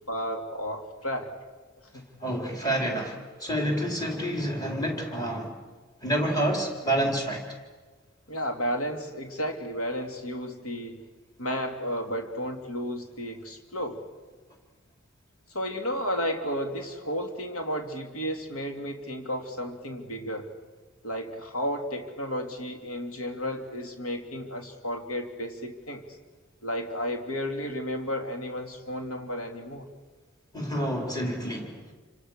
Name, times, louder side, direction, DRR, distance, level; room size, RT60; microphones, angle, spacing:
voice 1, 0.1-1.3 1.9-2.2 8.3-11.0 11.4-14.0 15.5-20.5 21.0-26.0 26.6-29.9, equal, 85° left, 3 dB, 3.1 m, -33 dB
voice 2, 2.2-5.5 6.0-7.4 30.5-31.8, right 1 dB, 20° left, 1 dB, 4.4 m, -28 dB
28.5 x 27.0 x 6.7 m, 1.3 s
head